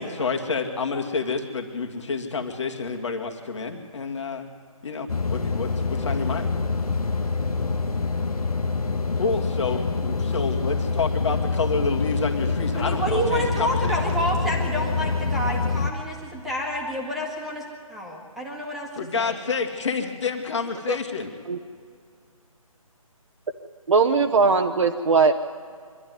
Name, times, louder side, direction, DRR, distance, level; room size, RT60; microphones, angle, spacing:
voice 1, 0.0-4.5 4.8-6.5 9.2-14.0 19.0-21.3, left 4 dB, 55° left, 3 dB, 2.3 m, -28 dB
sound 1, 5.1-15.9, left 4 dB, 85° left, 1.6 m, -26 dB
voice 2, 12.7-18.9 19.2-19.3, equal, ahead, -3 dB, 1.8 m, -29 dB
voice 3, 23.9-25.3, right 4 dB, 60° right, 3 dB, 1.1 m, -19 dB
24.5 x 12.5 x 9.5 m, 2.2 s
figure-of-eight pair, 160°, 18 cm